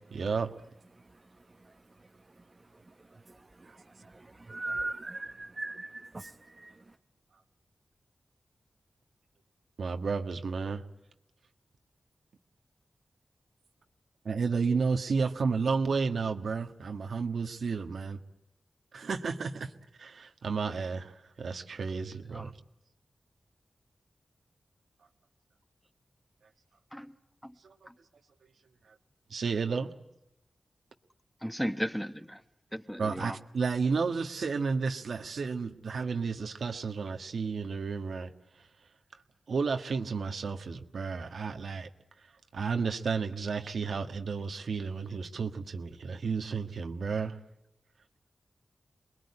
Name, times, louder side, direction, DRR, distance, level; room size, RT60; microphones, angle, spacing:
voice 1, 0.1-0.5 4.8-4.9 9.8-10.8 14.2-18.2 18.9-19.7 20.0-22.5 27.6-27.7 28.9-29.0 29.3-29.9 33.0-38.3 38.6-38.7 39.5-41.9 42.5-47.4, right 5 dB, 85° right, 1.6 m, -32 dB
voice 2, 3.7-6.7, right 2 dB, 35° right, 1.0 m, -39 dB
voice 3, 31.4-32.4 32.7-33.4, equal, 5° left, 1.3 m, -35 dB
28.0 x 21.5 x 9.8 m
wide cardioid pair, 75°, 0 cm